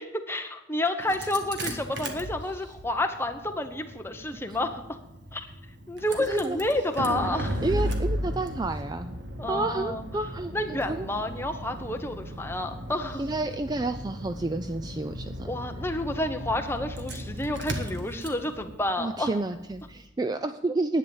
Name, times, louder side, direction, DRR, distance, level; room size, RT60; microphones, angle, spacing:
voice 1, 0.0-5.0 5.3-5.5 5.9-7.6 9.4-10.0 10.5-13.2 15.5-19.3, left 1 dB, 10° left, 6 dB, 0.9 m, -30 dB
Engine starting, 1.0-20.0, equal, 55° right, 1.5 m, -36 dB
voice 2, 7.6-9.2 9.5-10.5 10.9-11.1 13.2-15.5 19.0-21.0, right 2 dB, 20° right, 9 dB, 0.3 m, -30 dB
11.0 x 9.3 x 7.1 m, 0.89 s
head